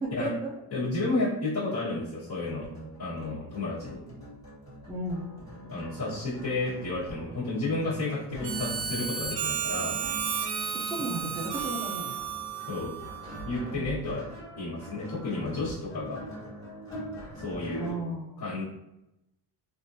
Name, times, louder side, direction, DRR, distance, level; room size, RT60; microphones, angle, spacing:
voice 1, 0.0-0.5 4.9-5.3 10.7-12.2 13.7-13.9 17.7-18.5, right 1 dB, 10° right, -6 dB, 0.4 m, -34 dB
voice 2, 0.7-2.7 3.0-4.0 5.7-10.0 12.7-12.9 13.4-14.2 14.6-16.2 17.3-17.9 18.4-18.6, left 2 dB, 40° left, -12 dB, 1.3 m, -31 dB
sound 1, 2.4-17.9, right 1 dB, 10° left, 1.3 m, -43 dB
Harmonica, 8.4-13.6, right 7 dB, 70° right, 0.6 m, -33 dB
3.5 x 2.6 x 2.6 m, 0.89 s
cardioid pair, 145°, 43 cm